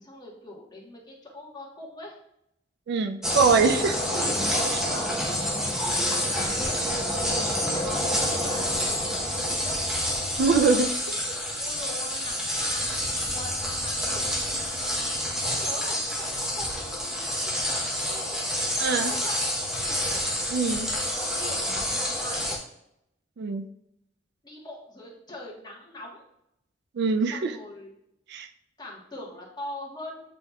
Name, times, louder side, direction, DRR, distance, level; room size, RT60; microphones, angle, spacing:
voice 1, 0.0-2.2 3.3-4.3 4.7-5.1 6.3-9.8 11.6-14.3 15.3-18.4 19.0-20.2 21.3-22.6 24.4-26.2 27.2-27.9 28.8-30.3, left 2 dB, 25° left, -3 dB, 1.2 m, -42 dB
voice 2, 2.9-4.0 4.7-4.8 10.4-10.9 18.8-19.1 20.5-20.9 23.4-23.7 26.9-27.5 28.3-28.5, right 4 dB, 60° right, 8 dB, 0.3 m, -23 dB
sound 1, 3.2-22.6, equal, 5° right, 0.8 m, -28 dB
8.2 x 2.9 x 2.3 m, 0.79 s
head